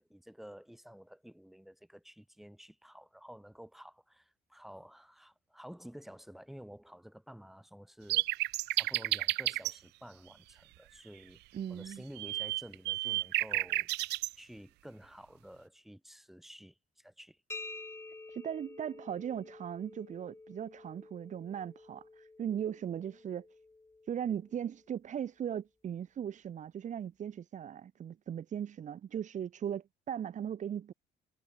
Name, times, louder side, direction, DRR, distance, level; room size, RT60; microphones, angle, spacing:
voice 1, 0.0-8.4 8.7-11.4 11.7-13.9 14.4-17.4, equal, ahead, 2.6 m, -51 dB
sound 1, 8.1-9.8 11.9-14.3, right 19 dB, 85° right, 1.0 m, -31 dB
voice 2, 11.5-12.0 18.3-23.5 24.0-30.9, right 9 dB, 45° right, 1.6 m, -38 dB
sound 2, 17.5-25.0, left 3 dB, 15° left, 2.0 m, -50 dB
cardioid pair, 110°, 17 cm